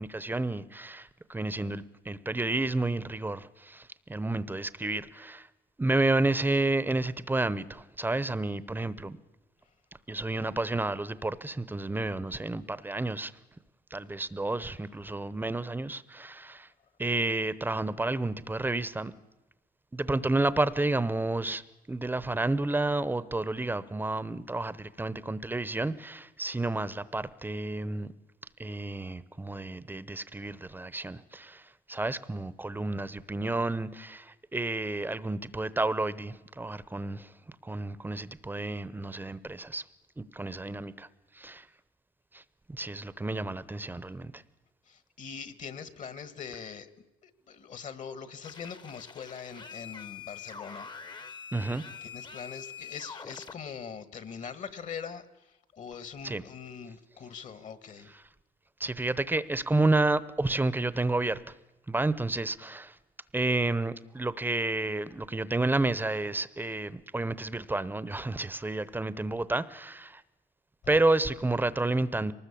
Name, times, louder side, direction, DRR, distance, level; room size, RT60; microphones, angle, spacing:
voice 1, 0.0-5.5 5.8-9.2 10.1-13.3 13.9-16.7 17.0-19.1 19.9-21.6 21.9-28.1 28.6-37.3 37.6-39.8 40.2-41.1 41.3-41.7 42.3-42.4 42.7-44.4 51.5-51.8 56.2-56.4 58.8-61.6 61.9-63.0 63.3-70.2 70.9-72.3, right 2 dB, 10° right, 0.9 m, -30 dB
voice 2, 44.9-46.9 47.2-50.9 52.0-58.2, left 6 dB, 50° left, 1.6 m, -42 dB
sound 1, 48.4-53.5, left 6 dB, 25° left, 1.0 m, -45 dB
23.0 x 19.5 x 8.5 m
cardioid pair, 110°, 17 cm